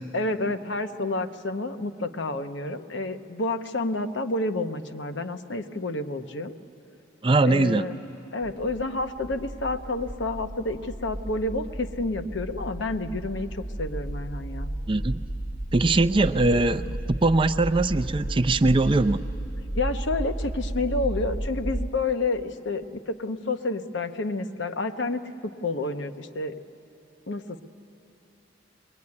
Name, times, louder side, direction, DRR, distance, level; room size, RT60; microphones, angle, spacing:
voice 1, 0.1-6.5 7.4-8.0 8.3-14.7 19.7-26.5 27.3-27.6, left 2 dB, 65° left, 9 dB, 0.9 m, -29 dB
voice 2, 7.2-7.9 14.9-15.2 15.7-19.3, right 2 dB, 25° right, 9 dB, 0.5 m, -21 dB
sound 1, 8.4-21.9, right 1 dB, 15° left, 0.7 m, -33 dB
22.5 x 21.5 x 9.7 m, 2.8 s
head